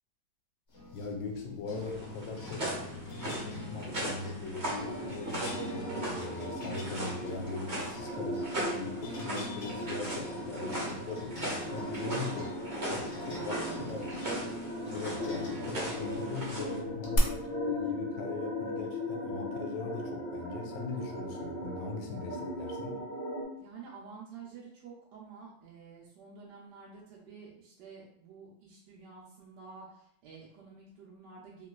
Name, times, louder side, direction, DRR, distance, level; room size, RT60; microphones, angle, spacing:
sound 1, 0.7-17.2, left 3 dB, 55° left, 0.7 m, -44 dB
voice 1, 0.9-2.7 3.2-12.6 12.9-14.1 14.9-23.0, left 4 dB, 75° left, 2 dB, 1.1 m, -40 dB
sound 2, 1.7-16.8, right 1 dB, 40° right, 1.1 m, -39 dB
sound 3, 4.8-23.4, left 1 dB, 30° left, 1.0 m, -38 dB
voice 2, 13.0-14.1 23.6-31.7, right 5 dB, 70° right, -5 dB, 1.2 m, -50 dB
3.2 x 3.0 x 2.3 m, 0.70 s
omnidirectional pair, 2.1 m